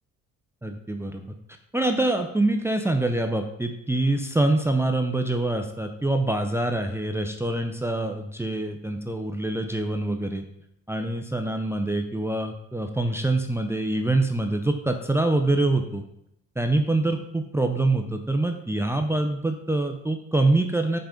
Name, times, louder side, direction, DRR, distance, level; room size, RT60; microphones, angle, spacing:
voice 1, 0.6-1.2 1.7-10.4 10.9-16.0 16.6-21.0, right 2 dB, 10° right, 5 dB, 0.6 m, -25 dB
5.8 x 5.2 x 5.0 m, 0.77 s
cardioid pair, 90°, 30 cm